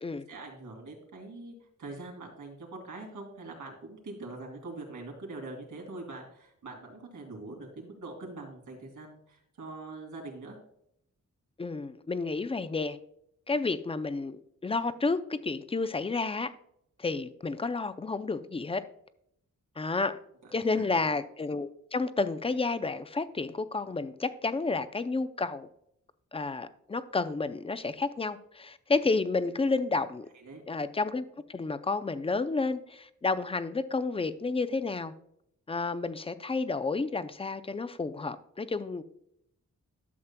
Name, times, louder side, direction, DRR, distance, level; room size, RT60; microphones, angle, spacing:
voice 1, 0.3-1.5 1.8-10.6 20.4-21.0 30.3-30.6, right 2 dB, 80° right, 0 dB, 2.8 m, -43 dB
voice 2, 11.6-13.0 13.5-16.5 17.0-18.8 19.8-20.2 20.5-25.7 26.3-30.3 30.7-31.2 31.5-35.1 35.7-39.0, left 3 dB, 20° left, 12 dB, 0.4 m, -31 dB
12.0 x 7.2 x 2.2 m, 0.73 s
wide cardioid pair, 130°, 29 cm